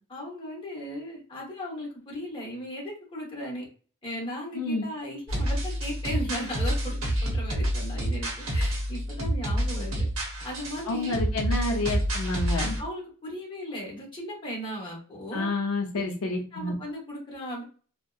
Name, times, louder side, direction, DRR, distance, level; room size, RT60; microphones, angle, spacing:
voice 1, 0.1-3.6 4.0-10.1 10.4-11.2 12.8-15.5 15.9-16.0 16.5-17.6, equal, 25° left, -3 dB, 1.0 m, -37 dB
voice 2, 4.5-4.8 10.9-12.8 15.3-16.7, left 2 dB, 90° left, 1 dB, 0.5 m, -29 dB
sound 1, 5.3-12.8, equal, 65° right, 0.8 m, -28 dB
2.6 x 2.1 x 2.3 m, 0.39 s
head